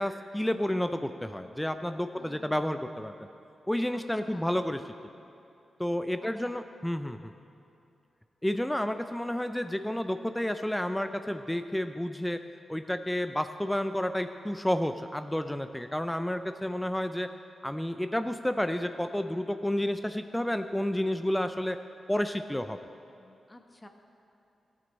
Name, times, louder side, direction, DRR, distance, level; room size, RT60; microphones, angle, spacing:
voice 1, 0.0-3.1 3.7-4.8 5.8-7.3 8.4-12.4 12.7-17.3 17.6-21.8 22.1-22.8, left 1 dB, 10° left, 9 dB, 0.4 m, -30 dB
voice 2, 2.1-2.7 3.9-4.0 4.3-4.5 6.2-6.6 23.2-23.9, left 2 dB, 25° left, 5 dB, 1.0 m, -52 dB
13.5 x 8.7 x 4.1 m, 2.7 s
supercardioid pair, 40°, 0 cm